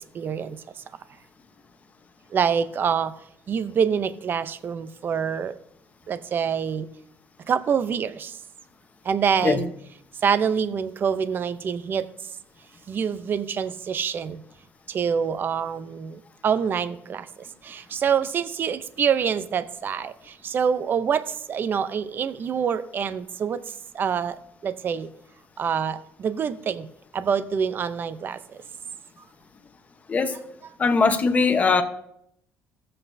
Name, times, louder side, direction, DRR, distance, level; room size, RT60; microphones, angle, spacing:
voice 1, 0.1-0.6 2.3-3.1 3.5-5.5 6.1-6.9 7.5-8.3 9.1-9.7 10.2-12.0 12.9-14.4 14.9-16.2 16.4-17.2 17.6-20.1 20.4-23.6 23.9-24.4 24.6-25.1 25.6-26.9 27.1-28.4, right 7 dB, 40° right, 13 dB, 0.6 m, -25 dB
voice 2, 30.8-31.8, left 4 dB, 30° left, 8 dB, 1.0 m, -20 dB
16.0 x 7.6 x 2.7 m, 0.72 s
cardioid pair, 125°, 5 cm